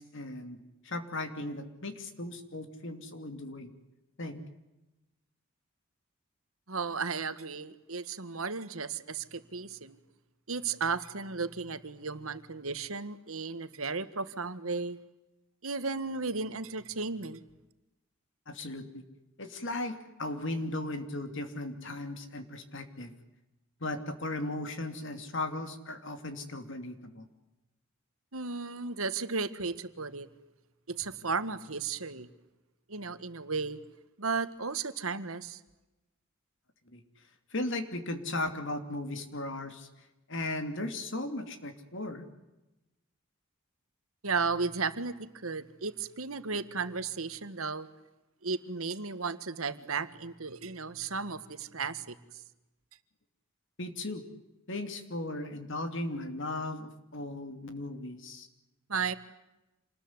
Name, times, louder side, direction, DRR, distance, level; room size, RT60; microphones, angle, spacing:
voice 1, 0.0-3.7 4.2-4.4 18.5-19.0 19.4-23.1 23.8-27.3 36.9-37.0 37.5-39.9 40.3-42.3 53.8-54.2 54.7-58.5, left 2 dB, 60° left, 8 dB, 2.9 m, -37 dB
voice 2, 6.7-10.0 10.5-15.0 15.6-17.4 28.3-30.3 30.9-32.3 32.9-33.8 34.2-35.6 44.2-47.9 48.4-52.4 58.9-59.1, right 4 dB, 85° right, 12 dB, 1.7 m, -34 dB
27.5 x 20.5 x 9.6 m, 0.99 s
head